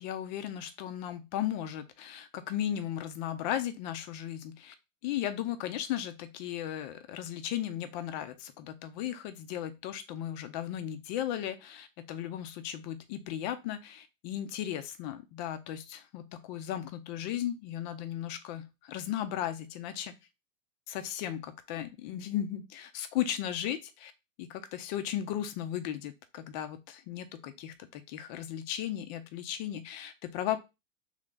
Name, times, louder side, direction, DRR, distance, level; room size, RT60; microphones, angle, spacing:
voice 1, 0.0-4.7 5.0-20.1 20.9-24.1 24.4-30.6, left 11 dB, 35° left, 10 dB, 0.6 m, -36 dB
3.2 x 3.2 x 3.8 m, 0.25 s
figure-of-eight pair, 105°, 40 cm